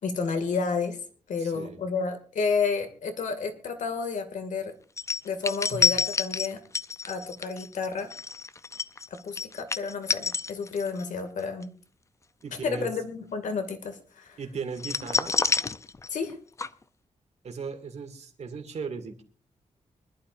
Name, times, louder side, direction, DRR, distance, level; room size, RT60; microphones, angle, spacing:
voice 1, 0.0-1.0 1.3-4.7 5.2-6.6 7.0-8.1 9.1-11.7 12.6-14.4 16.1-16.4, left 5 dB, 80° left, 7 dB, 2.2 m, -31 dB
voice 2, 1.4-1.8 5.7-5.9 12.4-12.9 14.4-15.3 17.4-19.2, right 5 dB, 60° right, 5 dB, 2.3 m, -37 dB
sound 1, 5.0-11.0 11.4-11.6 14.8-16.3 16.6-16.7, left 5 dB, 25° left, 0.5 m, -28 dB
24.5 x 11.5 x 2.6 m, 0.38 s
wide cardioid pair, 125°, 13 cm